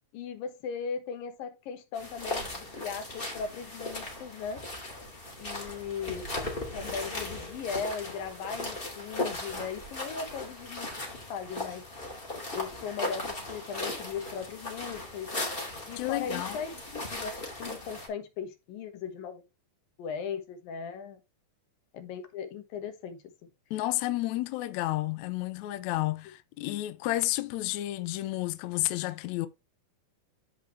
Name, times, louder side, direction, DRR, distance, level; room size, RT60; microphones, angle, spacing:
voice 1, 0.1-4.6 5.4-6.3 6.7-11.9 12.5-15.3 15.9-19.4 20.0-21.2 21.9-23.2, left 6 dB, 75° left, 3.0 m, -38 dB
sound 1, 1.9-18.1, left 2 dB, 15° left, 2.8 m, -37 dB
voice 2, 16.0-16.6 23.7-29.5, left 17 dB, 90° left, 1.6 m, -31 dB
13.5 x 5.1 x 3.2 m
omnidirectional pair, 4.2 m